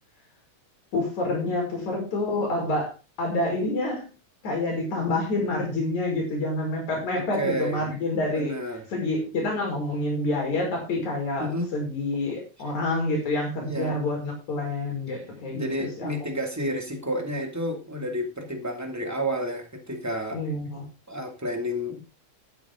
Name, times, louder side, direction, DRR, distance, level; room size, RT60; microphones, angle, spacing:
voice 1, 0.9-2.9 3.2-4.1 4.4-8.6 8.9-16.1 20.3-20.9, left 2 dB, 75° left, 0 dB, 6.6 m, -28 dB
voice 2, 7.1-7.8 8.1-8.8 11.4-11.7 13.6-13.9 15.5-20.4 21.1-22.2, equal, 5° right, 3 dB, 2.1 m, -30 dB
12.0 x 11.0 x 3.7 m, 0.27 s
omnidirectional pair, 3.3 m